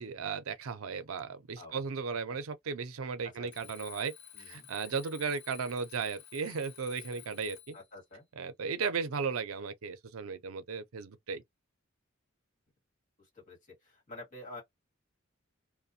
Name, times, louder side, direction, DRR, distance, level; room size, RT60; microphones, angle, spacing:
voice 1, 0.0-4.1 4.4-7.8 8.4-11.4, right 5 dB, 85° right, 0.5 m, -36 dB
voice 2, 3.4-3.7 4.3-4.7 7.7-8.2 13.3-13.6 13.8-14.6, left 2 dB, 40° left, 1.5 m, -48 dB
Alarm, 3.5-7.9, left 12 dB, 80° left, 0.8 m, -51 dB
2.4 x 2.1 x 2.6 m
head